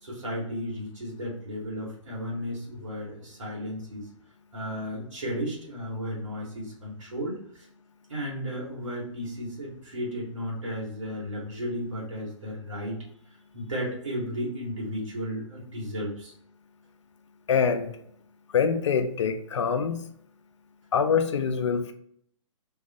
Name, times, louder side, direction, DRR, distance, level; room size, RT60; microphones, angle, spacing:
voice 1, 0.0-4.1 4.5-7.7 8.1-13.0 13.5-16.3, equal, 70° right, -4 dB, 1.2 m, -34 dB
voice 2, 17.5-17.9 18.5-20.0 20.9-21.9, left 6 dB, 60° left, 7 dB, 0.5 m, -24 dB
2.4 x 2.3 x 3.8 m, 0.68 s
figure-of-eight pair, 120°, 17 cm